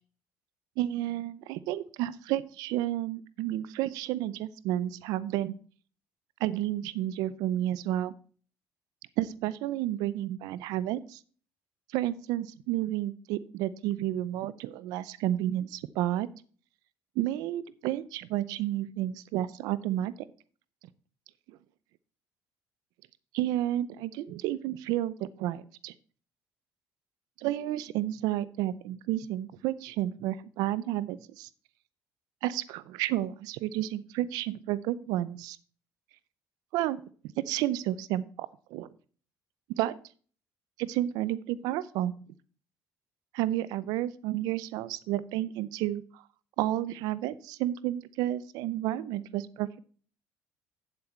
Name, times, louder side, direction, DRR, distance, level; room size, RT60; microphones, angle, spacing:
voice 1, 0.8-5.5 6.4-8.1 9.2-11.2 11.9-16.3 17.2-20.1 21.5-21.6 23.3-25.9 27.4-31.5 32.4-35.6 36.7-37.0 37.4-38.9 39.8-39.9 40.8-42.1 43.3-46.2 46.6-49.8, right 13 dB, 85° right, 18 dB, 0.6 m, -31 dB
8.8 x 7.7 x 4.4 m, 0.42 s
supercardioid pair, 90°, 6 cm